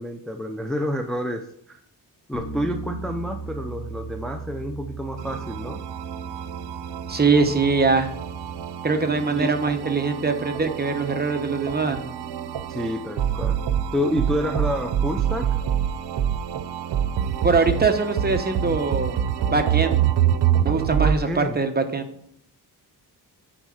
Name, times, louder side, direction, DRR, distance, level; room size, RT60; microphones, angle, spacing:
voice 1, 0.0-1.8 2.3-5.8 9.4-9.5 12.7-13.6 13.9-15.6 21.0-21.6, equal, ahead, 4 dB, 0.5 m, -29 dB
Bass guitar, 2.3-8.6, right 4 dB, 85° left, 2.2 m, -37 dB
sound 1, 5.2-21.2, right 9 dB, 80° right, 0.7 m, -26 dB
voice 2, 7.1-8.1 8.8-12.1 17.4-19.2 19.5-20.0 20.6-22.1, right 4 dB, 25° right, 6 dB, 0.9 m, -22 dB
8.9 x 4.3 x 6.3 m, 0.68 s
wide cardioid pair, 120°, 40 cm